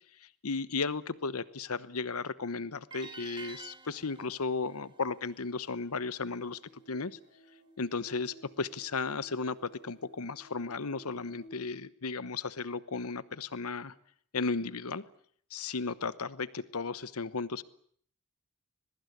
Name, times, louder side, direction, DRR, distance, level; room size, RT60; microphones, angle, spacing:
voice 1, 0.1-6.6 6.9-7.2 7.8-13.9 14.3-15.0 15.5-17.6, left 4 dB, 85° left, 16 dB, 1.0 m, -35 dB
sound 1, 2.9-6.1, right 4 dB, 20° right, 1.6 m, -50 dB
sound 2, 6.2-11.5, right 1 dB, 55° right, 6.0 m, -57 dB
22.5 x 21.5 x 9.7 m, 0.62 s
head